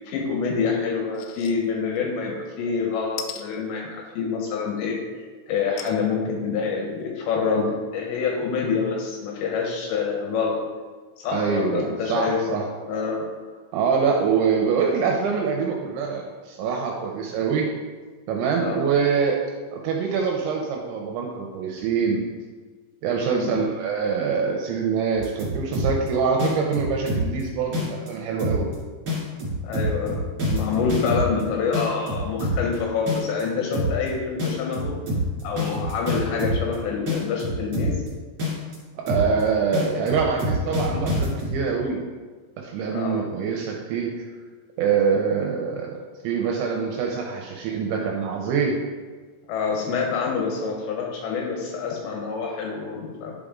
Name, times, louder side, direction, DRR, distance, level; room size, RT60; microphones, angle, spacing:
voice 1, 0.0-5.0 5.5-10.6 11.2-12.4 12.9-13.3 18.6-18.8 23.4-23.6 29.6-34.9 35.4-37.9 42.9-43.2 49.5-53.3, left 5 dB, 75° left, -1 dB, 2.9 m, -26 dB
sound 1, 1.1-1.5 2.0-2.1 3.2-3.4 5.8-6.0 6.6-6.7 6.9-7.0, left 10 dB, 90° left, 2.5 m, -36 dB
voice 2, 11.3-12.6 13.7-17.7 18.3-19.4 19.7-22.2 23.0-28.7 39.1-42.0 42.6-44.1 44.8-46.0 46.2-48.8, right 6 dB, 80° right, 0 dB, 2.7 m, -24 dB
sound 2, 25.1-26.1 26.4-27.4 27.7-28.1 28.4-28.7 29.1-31.4 31.7-32.7 33.1-33.4 33.7-34.1 34.4-36.7 37.1-38.1 38.4-38.7 39.1-39.4 39.7-41.5, equal, 35° right, 2.6 m, -26 dB
10.5 x 5.1 x 3.7 m, 1.4 s
omnidirectional pair, 5.8 m